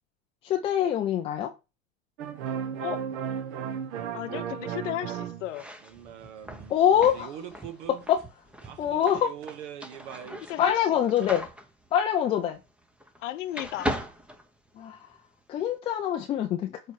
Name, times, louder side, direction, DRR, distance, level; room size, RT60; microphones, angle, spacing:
voice 1, 0.4-1.5 6.7-7.5 7.9-8.2 8.8-9.3 10.6-11.5 11.9-12.6 14.8-15.0 15.5-16.8, left 9 dB, 15° left, 0.3 m, -25 dB
sound 1, 2.2-5.5 5.8-8.0 8.6-10.5, right 8 dB, 55° right, 1.0 m, -36 dB
voice 2, 4.1-5.7 10.5-10.8 11.1-11.3 13.2-14.0, left 13 dB, 60° left, 0.8 m, -34 dB
sound 2, 5.4-13.2 13.5-15.2, equal, 5° right, 0.7 m, -39 dB
8.0 x 3.3 x 4.6 m
hypercardioid pair, 100°, 41 cm